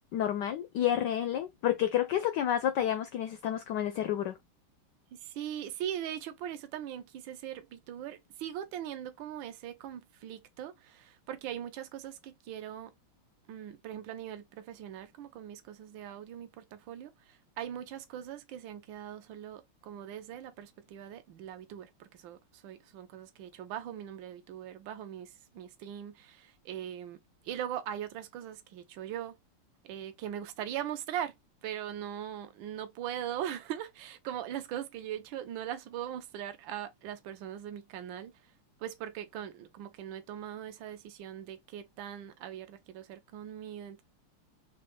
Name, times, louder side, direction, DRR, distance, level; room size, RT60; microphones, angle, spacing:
voice 1, 0.1-4.4, left 11 dB, 80° left, 1.0 m, -30 dB
voice 2, 5.2-12.9 13.5-17.1 17.6-22.4 22.6-27.2 27.4-29.4 29.8-31.3 31.6-38.3 38.8-44.0, right 10 dB, 70° right, 1.4 m, -40 dB
4.1 x 3.3 x 3.2 m
omnidirectional pair, 2.4 m